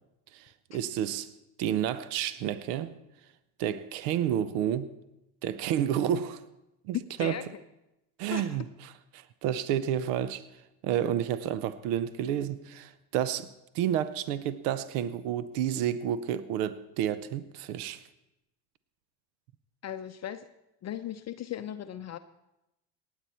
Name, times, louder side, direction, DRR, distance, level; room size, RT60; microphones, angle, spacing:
voice 1, 0.3-1.3 1.6-2.9 3.6-4.9 5.4-6.4 6.8-7.4 8.2-13.5 13.7-18.0, right 10 dB, 70° right, 15 dB, 0.8 m, -30 dB
voice 2, 19.8-20.5 20.8-22.2, left 10 dB, 35° left, 9 dB, 0.6 m, -37 dB
18.5 x 8.7 x 4.3 m, 0.91 s
hypercardioid pair, 75°, 48 cm